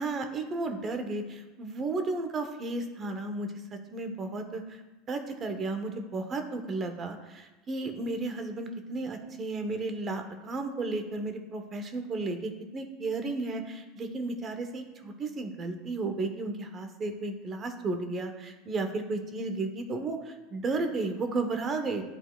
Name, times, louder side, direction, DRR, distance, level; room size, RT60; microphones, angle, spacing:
voice 1, 0.0-4.8 5.1-22.0, right 3 dB, 35° right, 6 dB, 1.0 m, -33 dB
11.5 x 3.9 x 2.4 m, 1.1 s
supercardioid pair, 105°, 0 cm